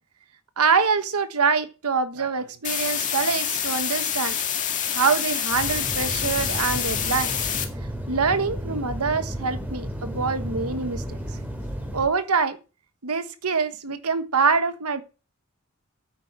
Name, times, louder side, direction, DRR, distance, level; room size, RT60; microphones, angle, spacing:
voice 1, 0.6-4.4 4.9-7.4 8.1-11.2 11.9-12.6 13.0-15.0, right 5 dB, 90° right, 1.3 m, -25 dB
sound 1, 2.6-7.6, left 9 dB, 35° left, 2.0 m, -27 dB
sound 2, 5.5-12.1, equal, 10° right, 2.8 m, -33 dB
9.5 x 8.8 x 7.3 m
head